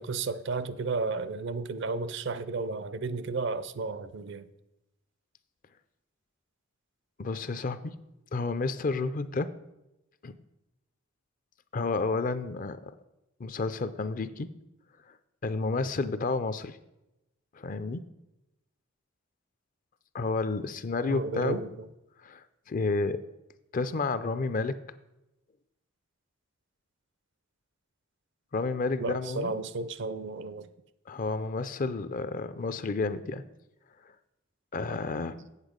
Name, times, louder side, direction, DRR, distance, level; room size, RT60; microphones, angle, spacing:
voice 1, 0.0-4.5 21.1-21.7 29.0-30.7, right 3 dB, 60° right, 0.5 m, -33 dB
voice 2, 7.2-8.0 8.3-9.5 10.2-10.3 11.7-12.9 13.4-14.5 15.4-16.8 17.5-18.0 20.1-21.6 22.2-23.2 23.7-24.8 28.5-29.6 31.1-33.4 34.7-35.5, left 3 dB, 40° left, 0.5 m, -31 dB
8.2 x 7.8 x 5.1 m
head